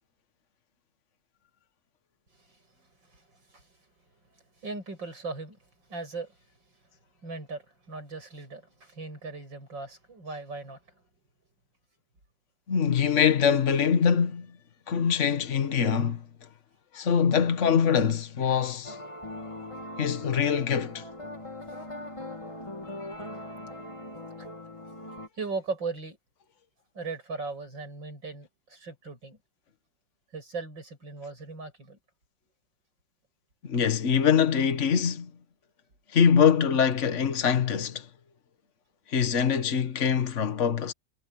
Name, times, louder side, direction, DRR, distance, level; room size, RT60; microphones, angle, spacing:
voice 1, 2.3-2.6 3.0-3.7 4.6-5.6 5.9-6.4 6.6-6.7 7.2-10.8 12.8-12.9 24.4-24.5 25.3-26.2 26.9-29.4 30.3-32.0, right 4 dB, 85° right, 8.9 m, -38 dB
voice 2, 12.7-14.5 14.9-16.2 16.9-19.0 20.0-21.1 33.6-35.3 36.1-38.1 39.1-40.9, left 7 dB, 40° left, 1.9 m, -23 dB
sound 1, 18.8-25.3, left 1 dB, 15° left, 2.5 m, -40 dB
omnidirectional pair, 2.0 m